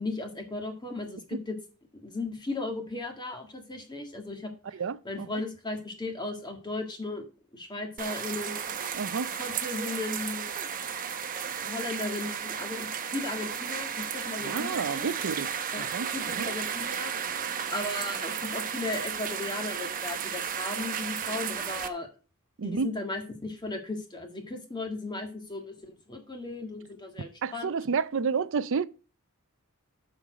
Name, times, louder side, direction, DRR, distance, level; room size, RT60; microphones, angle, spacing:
voice 1, 0.0-1.5 2.0-7.2 7.5-8.7 9.4-10.7 11.6-15.1 15.7-17.1 17.7-22.1 22.6-27.7, left 2 dB, 20° left, 1.7 m, -36 dB
voice 2, 4.8-5.3 8.9-9.3 14.4-16.1 16.4-16.5 22.6-22.9 27.4-28.9, right 5 dB, 60° right, 0.5 m, -30 dB
sound 1, 8.0-21.9, right 7 dB, 40° right, 0.8 m, -34 dB
7.1 x 6.5 x 4.9 m
head